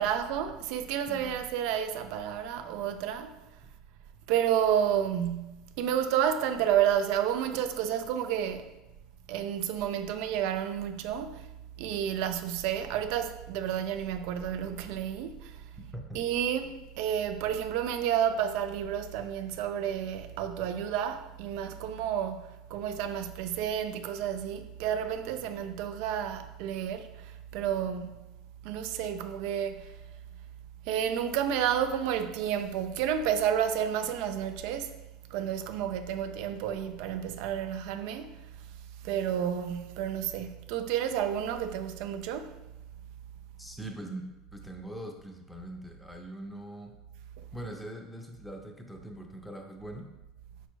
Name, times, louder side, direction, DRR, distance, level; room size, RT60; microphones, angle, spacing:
voice 1, 0.0-3.4 4.3-8.7 9.3-11.5 11.8-15.7 16.1-28.3 28.6-29.9 30.8-34.9 35.3-38.4 39.0-42.6 47.4-47.5, right 9 dB, 70° right, 0.4 m, -30 dB
voice 2, 43.6-46.9 47.5-50.1, right 1 dB, ahead, 0.6 m, -42 dB
5.0 x 4.7 x 2.2 m
supercardioid pair, 125°, 0 cm